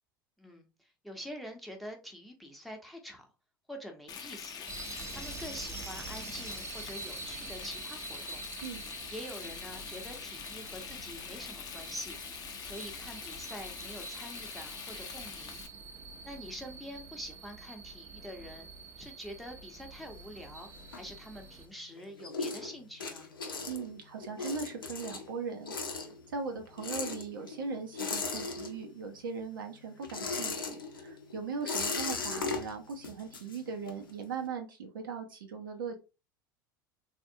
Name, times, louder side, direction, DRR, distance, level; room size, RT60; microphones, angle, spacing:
voice 1, 0.4-3.3 3.7-4.6 5.1-8.4 9.1-12.2 12.6-15.6 16.2-18.7 19.0-23.3, equal, ahead, 0.9 m, -45 dB
Frying (food), 4.1-15.7, left 7 dB, 35° left, 0.6 m, -44 dB
sound 1, 4.7-21.7, right 4 dB, 25° right, 0.7 m, -46 dB
sound 2, 20.0-21.6 21.9-29.1 29.4-34.1, left 4 dB, 80° left, 0.6 m, -38 dB
voice 2, 23.7-25.7 26.3-36.0, right 5 dB, 70° right, 0.7 m, -39 dB
3.5 x 2.5 x 2.6 m
figure-of-eight pair, 75°, 11 cm